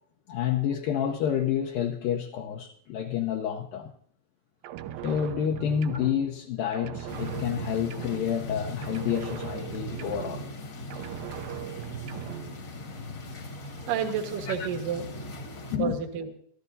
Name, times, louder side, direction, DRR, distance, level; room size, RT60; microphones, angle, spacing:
voice 1, 0.3-3.9 5.0-10.5 14.5-14.7 15.7-16.0, left 9 dB, 75° left, 2.3 m, -29 dB
sound 1, 4.6-6.5 6.7-8.6 8.8-10.6 10.9-12.6, right 11 dB, 80° right, 2.3 m, -39 dB
sound 2, 7.1-15.8, left 2 dB, 45° left, 1.6 m, -39 dB
voice 2, 13.5-15.1 15.8-16.3, right 7 dB, 65° right, 2.7 m, -30 dB
24.5 x 14.5 x 2.7 m
omnidirectional pair, 4.7 m